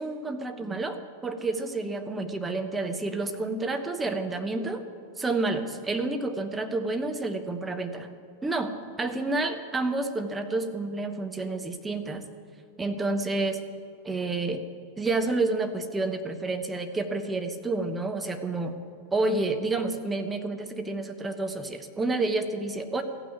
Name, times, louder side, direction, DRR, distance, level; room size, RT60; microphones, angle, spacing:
voice 1, 0.0-4.8 5.2-8.1 8.4-12.2 12.8-13.6 14.0-14.6 15.0-18.8 19.1-23.0, right 2 dB, 10° right, 6 dB, 1.0 m, -29 dB
14.5 x 6.2 x 9.5 m, 2.4 s
figure-of-eight pair, 90°, 0 cm